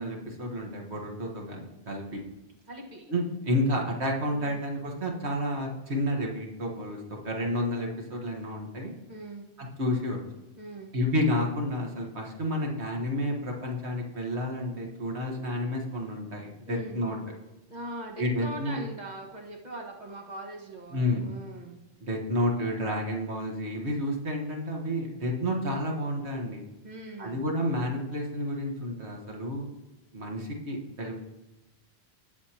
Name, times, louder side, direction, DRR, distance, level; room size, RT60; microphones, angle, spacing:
voice 1, 0.0-2.2 3.1-8.9 9.6-10.2 10.9-17.2 18.2-18.8 20.9-21.3 22.0-26.7 27.2-29.7 30.1-31.2, left 1 dB, 80° right, 0 dB, 1.8 m, -30 dB
voice 2, 2.7-3.1 4.3-4.7 9.1-9.5 10.6-10.9 16.7-17.0 17.7-21.8 26.8-27.4, right 1 dB, 40° right, -1 dB, 1.8 m, -41 dB
19.0 x 7.1 x 2.9 m, 1.0 s
omnidirectional pair, 1.1 m